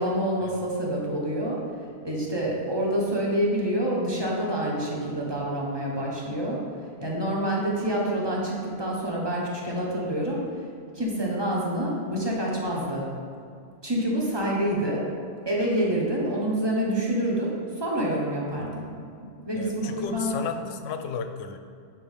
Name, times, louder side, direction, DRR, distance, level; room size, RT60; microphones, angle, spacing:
voice 1, 0.0-1.6 2.0-6.6 7.0-10.4 10.9-13.0 13.8-15.0 15.4-18.8 19.4-20.3, right 1 dB, 20° right, -3 dB, 1.0 m, -27 dB
voice 2, 19.5-21.6, left 6 dB, 80° left, 7 dB, 0.9 m, -33 dB
8.5 x 4.5 x 3.5 m, 2.4 s
omnidirectional pair, 1.3 m